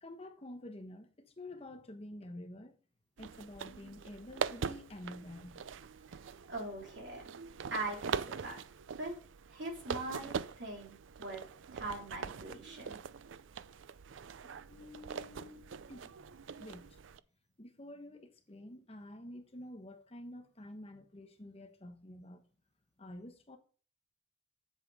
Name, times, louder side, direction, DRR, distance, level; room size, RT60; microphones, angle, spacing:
voice 1, 0.0-2.8 3.2-5.6 14.4-15.6 15.9-16.3 16.6-16.9 17.6-22.4 23.0-23.6, left 1 dB, 35° left, 1.1 m, -49 dB
sound 1, 3.2-17.2, right 6 dB, 85° right, 0.5 m, -43 dB
voice 2, 6.5-7.2 7.7-8.6 9.0-9.1 9.5-11.4 11.7-13.0, right 2 dB, 65° right, 3.5 m, -41 dB
7.7 x 7.6 x 4.9 m
head